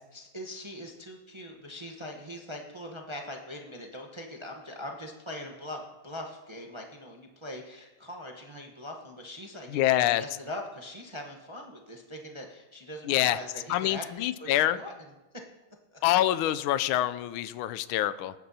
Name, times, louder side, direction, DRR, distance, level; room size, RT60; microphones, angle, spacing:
voice 1, 0.1-14.9 15.9-16.0, left 1 dB, 35° right, 1 dB, 0.5 m, -42 dB
voice 2, 9.7-10.2 13.1-13.4 13.7-14.8 16.0-18.3, left 13 dB, 80° left, 14 dB, 1.3 m, -26 dB
19.0 x 10.0 x 2.8 m, 1.1 s
omnidirectional pair, 2.3 m